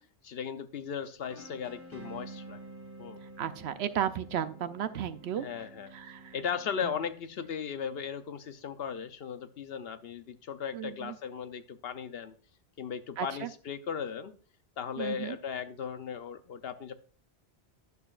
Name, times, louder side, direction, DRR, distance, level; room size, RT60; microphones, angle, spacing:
voice 1, 0.2-2.6 3.0-3.2 5.4-5.9 6.3-12.3 12.8-14.3 14.8-16.9, left 7 dB, 65° left, 10 dB, 0.8 m, -37 dB
sound 1, 1.3-7.2, right 2 dB, 15° right, 1.9 m, -49 dB
voice 2, 3.4-5.5 6.1-6.2 10.7-11.1 13.2-13.5 15.0-15.4, right 9 dB, 70° right, 11 dB, 0.8 m, -33 dB
11.0 x 6.8 x 2.4 m, 0.40 s
omnidirectional pair, 1.2 m